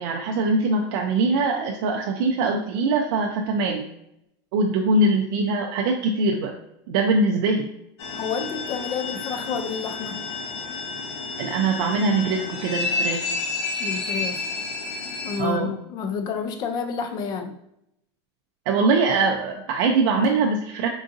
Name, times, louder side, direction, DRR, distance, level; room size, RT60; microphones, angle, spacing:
voice 1, 0.0-3.8 4.5-6.5 6.9-7.6 11.4-13.3 15.4-15.7 18.7-20.9, right 3 dB, 55° right, 2 dB, 0.4 m, -22 dB
sound 1, 8.0-15.4, left 4 dB, 75° left, 0.7 m, -30 dB
voice 2, 8.1-10.3 13.8-14.5 15.2-17.6, left 6 dB, 30° left, 7 dB, 0.3 m, -29 dB
3.7 x 2.5 x 2.4 m, 0.79 s
supercardioid pair, 150°, 14 cm